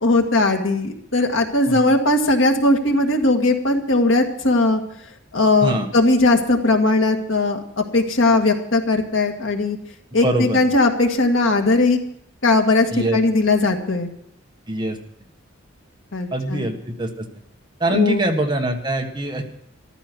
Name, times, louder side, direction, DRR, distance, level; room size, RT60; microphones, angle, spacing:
voice 1, 0.0-4.8 5.3-9.8 10.1-12.0 12.4-14.1 16.1-16.7 17.9-18.3, left 2 dB, 90° left, 4 dB, 2.0 m, -18 dB
voice 2, 10.2-10.6 12.9-13.2 14.7-15.0 16.3-17.3 17.8-19.4, right 1 dB, 25° right, 3 dB, 1.5 m, -23 dB
14.0 x 13.0 x 6.2 m, 0.70 s
head